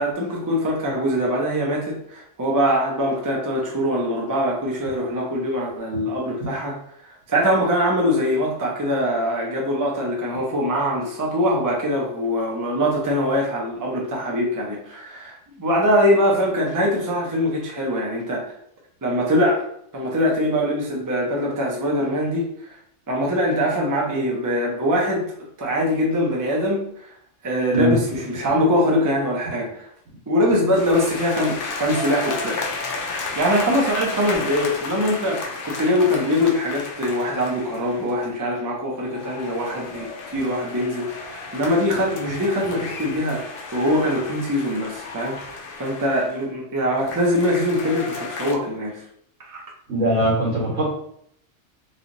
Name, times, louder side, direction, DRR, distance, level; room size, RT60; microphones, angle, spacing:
voice 1, 0.0-6.8 7.1-18.5 19.0-19.7 19.9-22.8 23.1-25.3 25.6-26.8 27.4-29.9 30.3-32.6 33.4-43.4 43.7-49.0 49.4-49.6, equal, 20° right, -3 dB, 0.5 m, -23 dB
sound 1, 30.7-38.3 38.9-46.5 47.0-48.5, left 3 dB, 60° left, 0.6 m, -33 dB
voice 2, 49.9-50.9, right 1 dB, 70° right, -4 dB, 1.6 m, -21 dB
3.2 x 3.0 x 2.6 m, 0.68 s
omnidirectional pair, 1.3 m